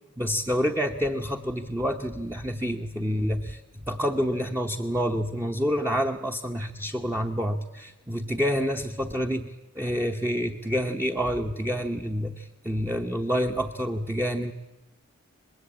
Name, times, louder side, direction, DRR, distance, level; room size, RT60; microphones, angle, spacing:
voice 1, 0.2-3.6 3.9-14.5, equal, 10° right, 2 dB, 0.8 m, -28 dB
25.0 x 21.0 x 8.7 m, 1.0 s
head